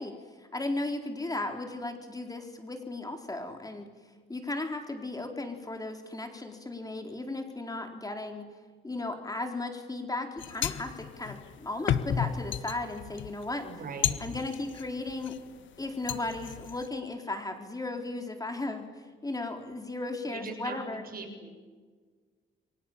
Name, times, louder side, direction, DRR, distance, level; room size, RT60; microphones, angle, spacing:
voice 1, 0.0-3.9 4.3-8.5 8.8-13.7 14.2-15.4 15.8-21.0, left 2 dB, 20° left, 4 dB, 4.1 m, -36 dB
sound 1, 10.4-15.4 15.8-16.9, left 9 dB, 75° left, 1.5 m, -33 dB
voice 2, 13.6-14.2 20.3-20.8 21.1-21.5, right 4 dB, 50° right, 4 dB, 7.0 m, -40 dB
29.5 x 24.5 x 7.5 m, 1.5 s
cardioid pair, 90°, 20 cm